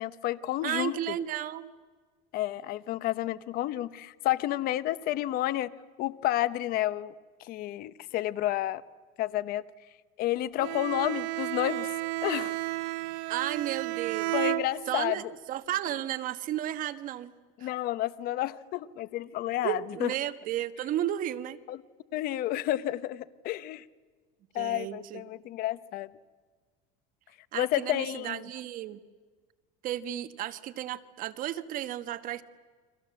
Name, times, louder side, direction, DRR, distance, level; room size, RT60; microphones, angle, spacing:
voice 1, 0.0-0.9 2.3-5.7 6.0-7.1 7.5-8.8 9.2-9.6 10.2-11.9 12.2-12.6 14.3-15.2 17.6-20.1 21.7-21.8 22.1-23.8 24.5-26.1 27.5-28.4, left 14 dB, 50° left, 15 dB, 1.0 m, -30 dB
voice 2, 0.6-1.7 13.3-14.3 14.9-15.2 15.5-17.3 17.6-17.7 19.6-21.6 24.5-25.2 27.5-29.0 29.8-32.4, right 12 dB, 45° right, 11 dB, 1.3 m, -33 dB
Bowed string instrument, 10.6-15.2, right 19 dB, 70° right, 1.3 m, -32 dB
30.0 x 24.0 x 7.7 m, 1.4 s
cardioid pair, 140°, 19 cm